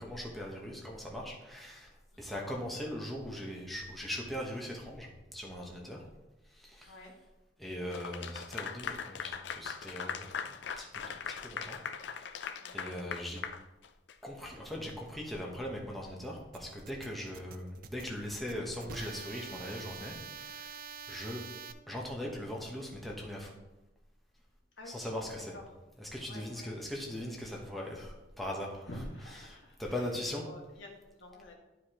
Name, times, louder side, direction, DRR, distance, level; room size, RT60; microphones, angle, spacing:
voice 1, 0.0-6.1 6.5-7.1 7.6-11.8 12.1-12.4 12.7-13.4 14.2-21.4 21.9-23.6 24.8-25.5 26.0-30.4, left 1 dB, ahead, -3 dB, 1.1 m, -40 dB
voice 2, 6.9-7.2 12.5-12.8 24.8-25.6 26.3-26.7 28.9-30.0 30.4-31.5, left 1 dB, 80° left, 0 dB, 1.6 m, -49 dB
Clapping / Applause, 7.9-14.3, left 6 dB, 65° left, 0.4 m, -40 dB
sound 1, 16.5-21.7, right 6 dB, 50° right, 0.4 m, -46 dB
11.5 x 4.9 x 3.0 m, 1.0 s
head